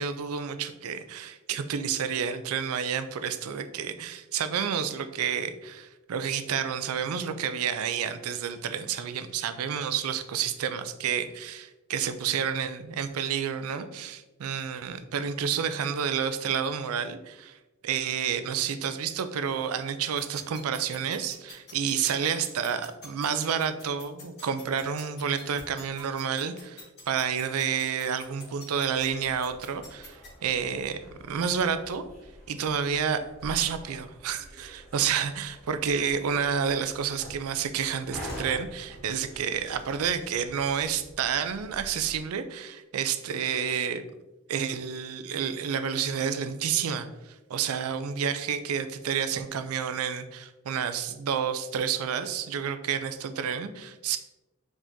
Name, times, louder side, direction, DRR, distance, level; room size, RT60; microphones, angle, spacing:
voice 1, 0.0-17.6 17.8-32.0 32.5-44.0 44.5-54.2, right 7 dB, 75° right, 10 dB, 0.4 m, -30 dB
sound 1, 20.2-30.3, left 4 dB, 50° left, 1.5 m, -46 dB
sound 2, 28.9-42.2, equal, ahead, 1.4 m, -46 dB
5.0 x 3.6 x 2.7 m, 1.0 s
head